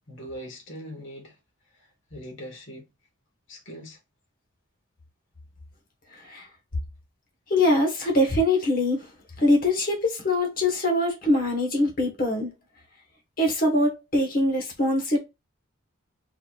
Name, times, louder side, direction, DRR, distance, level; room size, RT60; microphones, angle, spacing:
voice 1, 0.1-1.4 1.7-2.9 3.5-4.0, equal, 65° left, 1.5 m, -41 dB
voice 2, 6.1-6.5 7.5-9.1 9.4-12.5 13.4-15.2, left 1 dB, 40° left, 1.4 m, -23 dB
4.1 x 4.1 x 2.4 m
head